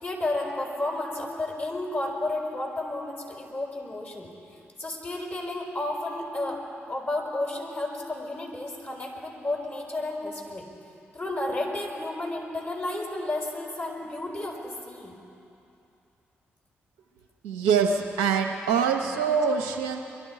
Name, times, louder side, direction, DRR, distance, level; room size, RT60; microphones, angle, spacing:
voice 1, 0.0-4.3 4.8-6.6 6.9-10.7 11.1-15.2, left 2 dB, 40° left, -1 dB, 4.7 m, -32 dB
voice 2, 17.4-20.0, right 6 dB, 90° right, 3 dB, 0.7 m, -24 dB
23.0 x 12.5 x 4.8 m, 2.7 s
hypercardioid pair, 40°, 5 cm